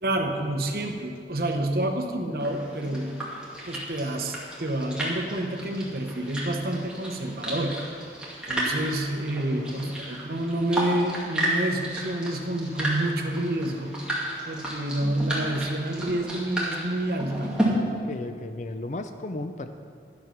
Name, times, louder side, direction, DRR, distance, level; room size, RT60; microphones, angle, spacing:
voice 1, 0.0-3.1 3.7-7.9 8.5-14.0 14.4-17.5, right 1 dB, 55° right, 4 dB, 1.0 m, -28 dB
sound 1, 2.4-17.7, right 1 dB, 5° right, 2.1 m, -33 dB
voice 2, 9.5-9.9 17.9-19.7, left 2 dB, 40° left, 8 dB, 0.4 m, -35 dB
11.5 x 7.7 x 5.9 m, 2.3 s
head